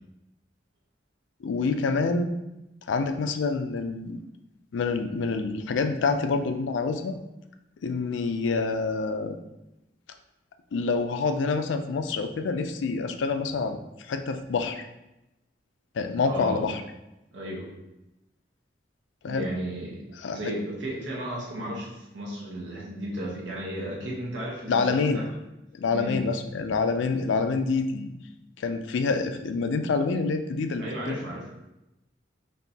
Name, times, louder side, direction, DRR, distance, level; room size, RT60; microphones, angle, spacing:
voice 1, 1.4-2.3 2.9-4.2 4.7-7.2 7.8-9.4 10.7-14.9 15.9-16.8 19.2-19.5 20.2-20.4 24.7-25.2 25.7-28.1 28.6-31.2, left 4 dB, 90° left, 8 dB, 0.4 m, -27 dB
voice 2, 16.2-16.7 17.3-17.7 19.3-20.0 20.3-25.2 25.9-26.2 30.8-31.5, equal, 85° right, -4 dB, 1.1 m, -34 dB
4.4 x 2.9 x 2.8 m, 0.93 s
head